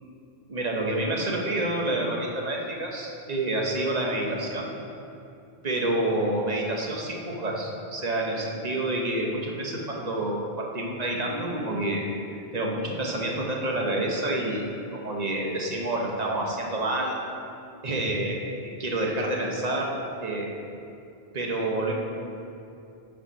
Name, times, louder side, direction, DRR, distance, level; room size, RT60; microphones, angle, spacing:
voice 1, 0.5-4.7 5.6-17.2 17.8-19.9 20.2-20.6 21.3-22.0, right 1 dB, 45° right, -1 dB, 1.1 m, -28 dB
7.4 x 5.0 x 5.6 m, 2.7 s
omnidirectional pair, 1.0 m